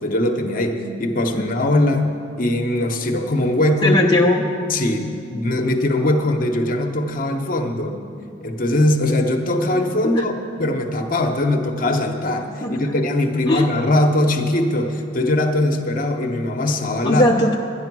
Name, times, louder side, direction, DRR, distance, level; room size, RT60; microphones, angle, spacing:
voice 1, 0.0-2.1 2.4-4.0 4.7-8.0 8.4-17.3, left 1 dB, 45° left, 4 dB, 1.0 m, -21 dB
voice 2, 3.8-4.4 10.2-10.3 12.6-12.8 13.5-13.7 17.0-17.6, left 1 dB, 25° left, -2 dB, 0.7 m, -18 dB
11.5 x 10.0 x 6.1 m, 2.5 s
head